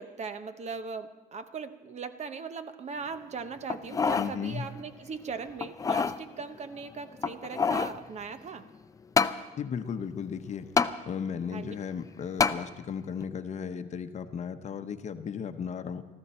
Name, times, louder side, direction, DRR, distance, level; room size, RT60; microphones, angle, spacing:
voice 1, 0.0-8.7 11.5-11.7, right 5 dB, 40° right, 11 dB, 0.9 m, -39 dB
sound 1, 3.7-4.3 4.8-4.9 5.6-6.2 7.2-8.0 9.2-9.4 10.8-10.9 12.4-12.6 13.2-13.3, left 5 dB, 20° left, 0.5 m, -26 dB
voice 2, 4.2-4.7 9.6-10.7 11.0-16.0, left 7 dB, 45° left, 8 dB, 0.9 m, -35 dB
20.5 x 14.0 x 4.3 m, 1.2 s
cardioid pair, 110°, 17 cm